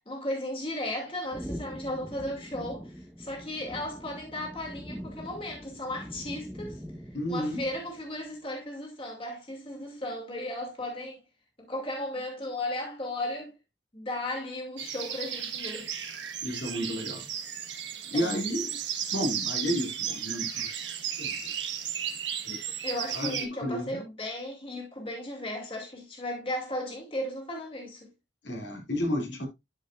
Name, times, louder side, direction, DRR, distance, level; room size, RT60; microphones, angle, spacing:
voice 1, 0.0-6.8 7.3-11.2 11.6-13.6 13.9-15.9 18.1-18.5 22.8-28.1, left 1 dB, 30° left, 2.4 m, -35 dB
sound 1, 1.3-8.1, equal, ahead, 1.0 m, -43 dB
voice 2, 7.1-7.6 16.4-17.3 18.1-18.9 19.1-20.7 21.2-21.5 22.5-22.6 23.1-24.1 28.4-29.5, equal, 80° left, 2.7 m, -32 dB
sound 2, 14.8-23.5, right 8 dB, 85° right, 1.3 m, -34 dB
12.0 x 5.1 x 2.5 m
head